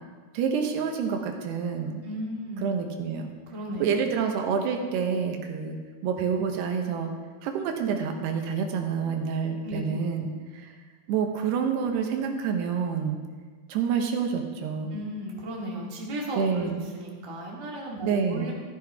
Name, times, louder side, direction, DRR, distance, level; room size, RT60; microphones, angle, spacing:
voice 1, 0.3-2.0 2.6-3.3 3.8-5.8 6.0-7.1 7.4-10.7 11.1-13.2 13.7-14.9 16.4-16.8 18.0-18.5, right 6 dB, 85° right, 4 dB, 3.3 m, -28 dB
voice 2, 2.0-2.6 3.5-4.0 9.6-9.9 14.9-16.7 16.9-18.5, equal, 20° right, -3 dB, 0.9 m, -35 dB
14.5 x 13.5 x 3.6 m, 1.5 s
omnidirectional pair, 4.6 m